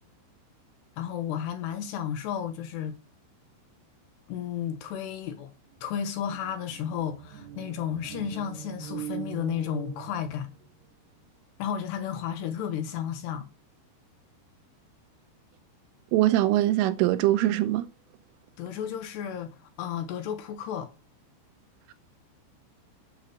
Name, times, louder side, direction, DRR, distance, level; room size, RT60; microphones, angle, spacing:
voice 1, 1.0-3.0 4.3-5.5 5.8-10.5 11.6-13.5 18.6-20.9, left 9 dB, 70° left, 3.1 m, -33 dB
sound 1, 5.4-5.5 5.7-10.8, right 10 dB, 65° right, 3.7 m, -42 dB
voice 2, 16.1-17.9, right 15 dB, 90° right, 3.4 m, -22 dB
8.5 x 7.4 x 6.4 m
omnidirectional pair, 5.5 m